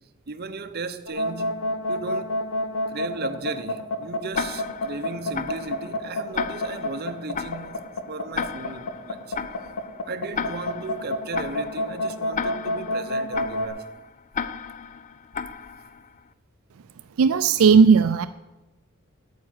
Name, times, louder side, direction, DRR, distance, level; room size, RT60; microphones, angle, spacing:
voice 1, 0.3-1.6 1.9-2.4 2.9-9.4 10.1-13.9, right 3 dB, 45° right, 0.8 m, -36 dB
sound 1, 1.1-13.7, left 1 dB, 80° left, 1.5 m, -28 dB
Tick-tock, 4.3-16.2, left 6 dB, 35° left, 0.4 m, -35 dB
voice 2, 17.2-18.3, right 5 dB, 75° right, 0.4 m, -16 dB
9.4 x 8.4 x 9.3 m
head